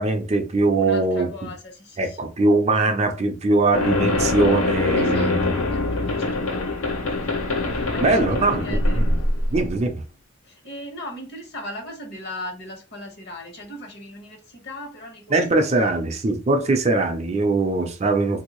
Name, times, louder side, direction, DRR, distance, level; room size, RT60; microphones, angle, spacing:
voice 1, 0.0-1.3 2.0-5.6 8.0-9.2 9.5-10.0 15.3-18.4, right 3 dB, 30° right, 0.5 m, -21 dB
voice 2, 0.8-2.2 4.9-9.0 10.4-15.9, left 1 dB, 55° left, 1.2 m, -39 dB
sound 1, 3.7-9.8, left 2 dB, 75° left, 0.8 m, -23 dB
3.4 x 2.6 x 3.0 m
head